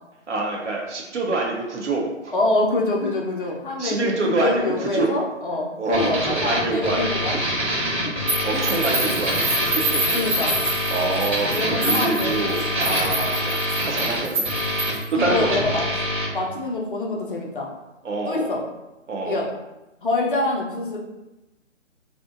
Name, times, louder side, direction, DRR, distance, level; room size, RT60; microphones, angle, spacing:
voice 1, 0.3-2.3 3.8-5.1 5.8-7.2 8.4-10.2 10.9-14.5 15.1-15.5 18.0-18.6 19.1-19.4, right 3 dB, 70° right, 0 dB, 0.7 m, -26 dB
voice 2, 2.3-7.4 7.9-8.1 10.1-10.6 11.5-12.4 15.1-15.8 16.3-17.7 18.2-18.6 19.2-19.5 20.0-21.0, left 2 dB, 45° left, -1 dB, 0.5 m, -25 dB
sound 1, 5.9-16.3, equal, 10° right, 0.5 m, -25 dB
sound 2, 8.3-15.1, right 1 dB, 30° right, 1.1 m, -27 dB
2.8 x 2.1 x 2.3 m, 1.0 s
figure-of-eight pair, 145°, 38 cm